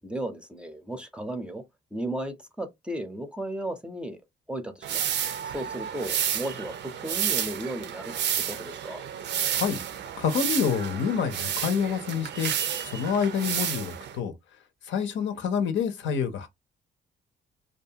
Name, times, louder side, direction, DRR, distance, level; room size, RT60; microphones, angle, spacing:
voice 1, 0.0-1.6 1.9-4.2 4.5-5.0 5.5-8.1 8.5-9.0, right 1 dB, 5° right, 0.6 m, -35 dB
sound 1, 4.8-14.2, right 9 dB, 65° right, 0.5 m, -31 dB
voice 2, 10.2-14.3 14.8-16.5, left 7 dB, 70° left, 0.7 m, -27 dB
2.6 x 2.3 x 2.8 m
cardioid pair, 90°, 20 cm